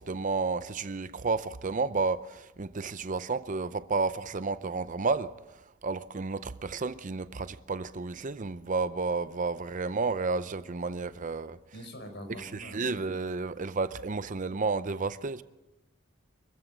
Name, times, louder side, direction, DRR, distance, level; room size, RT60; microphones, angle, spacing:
voice 1, 0.0-11.6 12.4-15.4, right 4 dB, 40° right, 0.6 m, -31 dB
voice 2, 11.7-13.0, equal, 60° left, 4.5 m, -44 dB
25.0 x 15.0 x 7.4 m
head